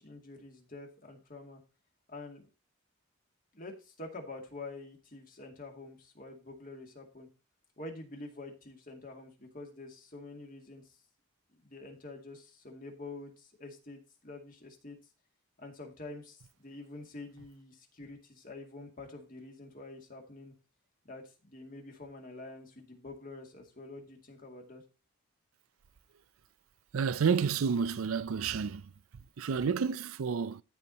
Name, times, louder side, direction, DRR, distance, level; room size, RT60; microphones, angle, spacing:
voice 1, 0.0-1.6 2.1-2.5 3.5-7.3 7.8-11.0 11.5-15.0 15.6-20.5 21.0-24.8, left 2 dB, 40° left, 2.3 m, -47 dB
voice 2, 26.9-28.8 29.4-30.6, right 6 dB, 80° right, 0.4 m, -30 dB
14.0 x 4.7 x 4.0 m
head